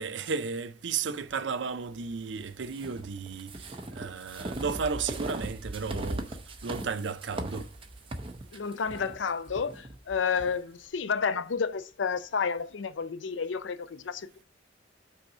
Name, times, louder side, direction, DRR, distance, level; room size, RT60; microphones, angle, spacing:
voice 1, 0.0-6.4 6.6-7.7, right 5 dB, 70° right, 0.5 m, -34 dB
sound 1, 2.6-10.5, right 1 dB, 30° right, 0.7 m, -39 dB
voice 2, 8.5-14.4, left 6 dB, 80° left, 0.5 m, -31 dB
5.8 x 3.9 x 6.1 m
head